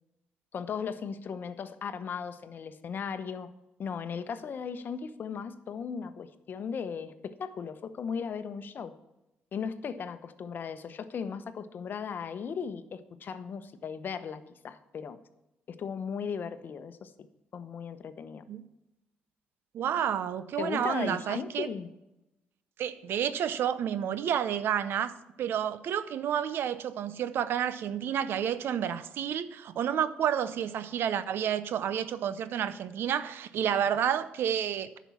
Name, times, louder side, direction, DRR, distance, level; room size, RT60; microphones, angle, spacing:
voice 1, 0.5-3.5 3.8-8.9 9.5-15.2 15.7-17.1 17.5-18.4 20.6-21.9, left 6 dB, 55° left, 0.9 m, -37 dB
voice 2, 19.7-21.7 22.8-35.0, right 9 dB, 70° right, 0.7 m, -30 dB
10.0 x 6.1 x 7.1 m
supercardioid pair, 65°, 4 cm